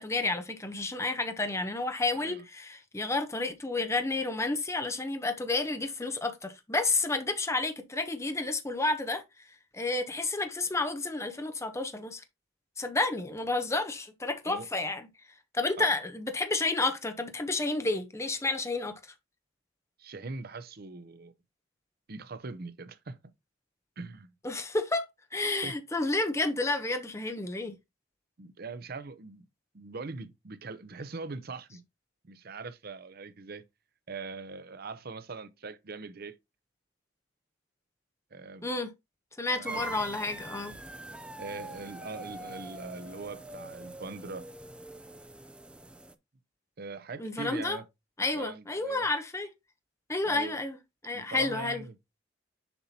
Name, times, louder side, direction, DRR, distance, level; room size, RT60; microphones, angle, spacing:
voice 1, 0.0-9.2 9.7-12.2 12.8-15.1 15.5-18.9 24.4-25.1 25.3-27.7 38.6-38.9 39.4-40.7 47.2-47.8 48.2-49.5 50.1-50.8 51.0-51.8, left 2 dB, 15° left, 0.8 m, -30 dB
voice 2, 2.1-2.4 14.5-14.7 15.8-15.9 20.0-21.3 22.1-23.2 24.0-24.3 25.6-25.7 28.4-29.4 29.7-31.8 32.2-33.6 34.1-36.4 38.3-38.7 39.5-40.0 41.4-44.5 46.8-47.8 48.3-49.1 50.2-50.6 51.1-52.0, right 3 dB, 50° right, 0.7 m, -41 dB
sound 1, 39.6-46.1, right 1 dB, 5° right, 0.4 m, -44 dB
6.9 x 5.5 x 2.8 m
head